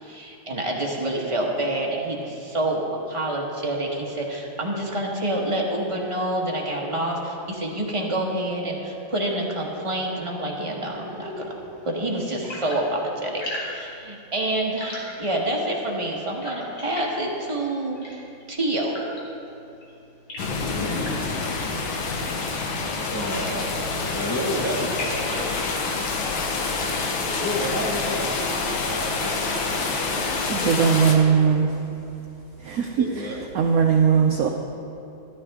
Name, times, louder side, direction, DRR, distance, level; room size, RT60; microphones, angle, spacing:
voice 1, 0.0-11.5 11.8-18.2 18.5-19.0, right 1 dB, 20° right, -2 dB, 0.9 m, -27 dB
sound 1, 10.8-29.1, left 1 dB, 55° left, 2.4 m, -41 dB
sound 2, 20.4-31.2, left 4 dB, 75° left, 1.8 m, -27 dB
voice 2, 23.1-25.6 26.7-31.5 33.0-33.5, equal, 10° left, -3 dB, 0.9 m, -32 dB
voice 3, 30.5-31.7 32.6-33.3 33.5-34.5, right 6 dB, 70° right, 3 dB, 0.8 m, -19 dB
12.5 x 12.5 x 3.6 m, 2.7 s
omnidirectional pair, 2.2 m